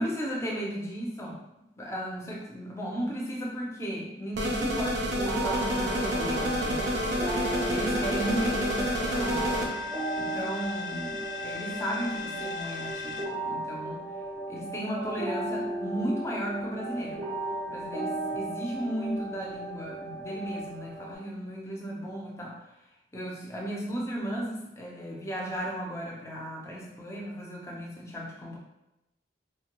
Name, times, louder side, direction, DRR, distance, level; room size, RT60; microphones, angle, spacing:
voice 1, 0.0-1.4 1.8-7.0 7.4-9.5 10.2-14.1 14.5-17.2 17.7-22.6 23.1-28.6, equal, 15° left, -3 dB, 0.5 m, -35 dB
sound 1, 4.4-9.7, equal, 70° right, 0.5 m, -29 dB
sound 2, 5.2-21.2, right 2 dB, 30° right, 0.6 m, -36 dB
sound 3, 5.5-13.3, left 4 dB, 70° left, 0.4 m, -38 dB
3.2 x 2.2 x 2.9 m, 0.91 s
head